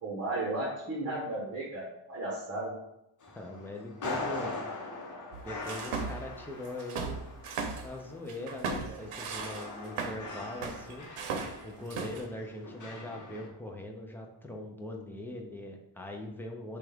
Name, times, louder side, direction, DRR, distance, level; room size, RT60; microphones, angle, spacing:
voice 1, 0.0-2.7, right 2 dB, 30° right, -4 dB, 1.0 m, -34 dB
sound 1, 3.2-13.5, left 2 dB, 40° left, 0.9 m, -42 dB
voice 2, 3.3-4.6 5.4-7.2 7.8-11.1 11.6-16.8, left 1 dB, 5° left, 1 dB, 0.3 m, -41 dB
sound 2, 5.3-6.3 6.7-7.9 8.3-10.2 10.6-12.3, right 4 dB, 85° right, 0.7 m, -37 dB
6.1 x 2.4 x 3.4 m, 0.87 s
wide cardioid pair, 150°, 49 cm